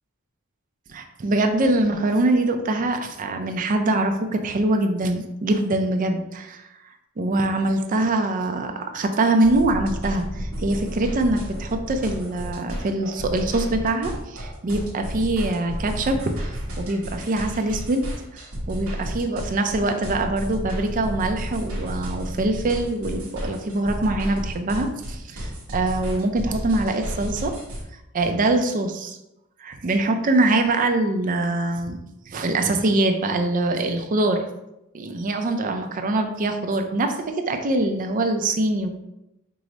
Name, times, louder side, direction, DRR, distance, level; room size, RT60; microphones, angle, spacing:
voice 1, 0.9-6.7 7.2-18.1 18.7-27.6 28.1-29.2 29.6-32.0 32.3-34.4 34.9-39.0, right 2 dB, 40° right, 5 dB, 0.4 m, -23 dB
sound 1, 9.4-27.8, equal, 85° right, 1.1 m, -32 dB
4.7 x 2.0 x 3.7 m, 0.89 s
head